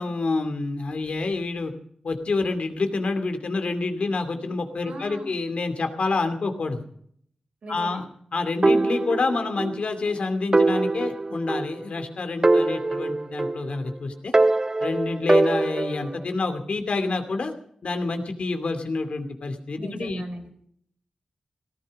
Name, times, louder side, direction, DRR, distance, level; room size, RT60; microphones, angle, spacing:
voice 1, 0.0-1.7 2.0-6.9 7.7-8.0 8.3-14.3 14.8-17.5 17.8-20.2, left 3 dB, 70° left, 7 dB, 2.6 m, -28 dB
voice 2, 4.8-5.3 7.6-8.0 19.7-20.5, right 1 dB, 75° right, 4 dB, 4.7 m, -38 dB
sound 1, 8.6-9.8 10.1-10.2 10.5-12.0 12.4-13.9 14.3-16.2, right 2 dB, 30° right, 0.6 m, -22 dB
17.5 x 15.0 x 5.3 m, 0.65 s
wide cardioid pair, 80°, 2 cm